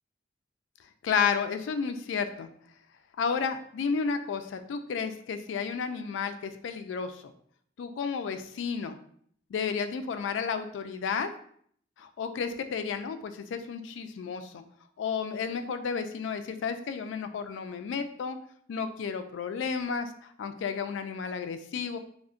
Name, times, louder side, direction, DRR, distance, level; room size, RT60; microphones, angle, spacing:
voice 1, 1.0-2.5 3.2-7.2 7.8-9.0 9.5-11.3 12.0-14.6 15.0-18.4 18.7-22.0, left 6 dB, 85° left, 9 dB, 0.3 m, -32 dB
2.4 x 2.1 x 3.6 m, 0.63 s
head